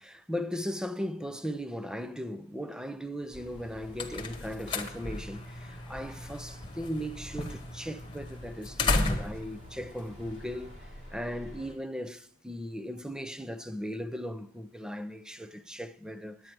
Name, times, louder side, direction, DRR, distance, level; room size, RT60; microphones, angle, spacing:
voice 1, 0.0-16.5, equal, 5° right, 0.5 m, -37 dB
sound 1, 3.3-11.7, left 1 dB, 50° right, 4.3 m, -49 dB
sound 2, 3.5-10.9, left 2 dB, 20° left, 1.2 m, -35 dB
11.0 x 9.0 x 4.6 m
head